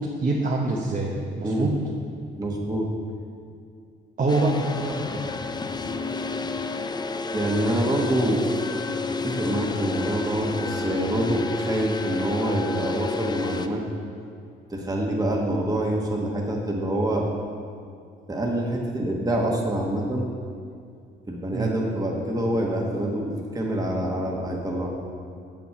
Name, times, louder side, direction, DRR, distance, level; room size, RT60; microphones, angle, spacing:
voice 1, 0.2-1.7 4.2-5.2 21.5-21.8, right 2 dB, 45° right, -3 dB, 1.0 m, -25 dB
voice 2, 2.3-2.9 7.3-8.4 9.2-13.8 14.7-17.3 18.3-20.3 21.3-24.9, right 1 dB, 20° right, -1 dB, 1.3 m, -26 dB
sound 1, 4.3-13.7, left 4 dB, 20° left, 0.5 m, -30 dB
7.2 x 7.0 x 5.9 m, 2.3 s
cardioid pair, 90°, 20 cm